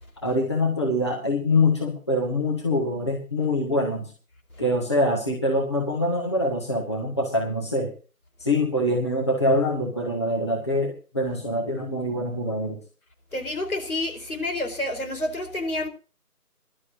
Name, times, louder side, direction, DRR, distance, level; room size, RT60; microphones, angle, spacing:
voice 1, 0.2-4.1 4.6-7.9 8.4-12.8, left 1 dB, 20° left, 1.4 m, -24 dB
voice 2, 13.3-15.9, left 1 dB, 65° left, 4.4 m, -29 dB
22.0 x 12.0 x 2.7 m
figure-of-eight pair, 165°, 46 cm